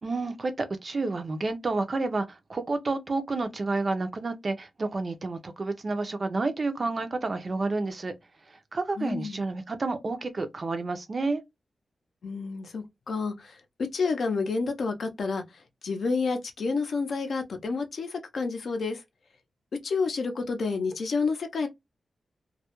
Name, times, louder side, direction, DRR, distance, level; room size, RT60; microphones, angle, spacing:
voice 1, 0.0-8.1 8.5-11.4, right 3 dB, 40° right, 0.4 m, -30 dB
voice 2, 9.0-9.4 12.2-13.6 13.9-19.0 19.8-21.7, left 4 dB, 70° left, 0.4 m, -29 dB
2.2 x 2.0 x 2.8 m
wide cardioid pair, 120°, 0 cm